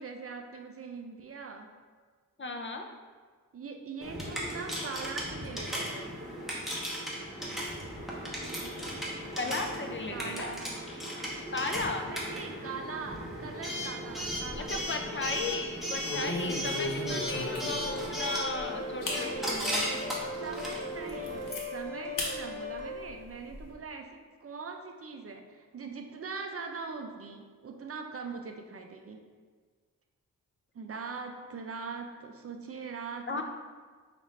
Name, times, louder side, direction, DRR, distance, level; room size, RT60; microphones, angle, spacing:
voice 1, 0.0-1.7 3.5-6.2 10.1-10.8 12.1-15.1 19.0-19.8 20.4-29.2 30.7-33.4, right 4 dB, 45° right, 4 dB, 0.4 m, -42 dB
voice 2, 2.4-2.9 9.4-10.5 11.5-12.1 14.7-20.1 33.3-33.4, left 3 dB, 35° left, 4 dB, 0.4 m, -35 dB
Coin (dropping) / Alarm, 4.0-21.5, equal, ahead, 0.9 m, -36 dB
sound 1, 14.4-14.9 15.2-15.5 16.0-18.1 18.6-18.7 19.0-19.3 19.8-19.9 20.4-20.5 20.8-21.6 22.2-22.3 22.7-23.7, left 2 dB, 70° left, 0.8 m, -36 dB
sound 2, 17.0-23.0, left 2 dB, 80° right, 0.8 m, -39 dB
5.3 x 2.5 x 3.1 m, 1.5 s
wide cardioid pair, 75°, 33 cm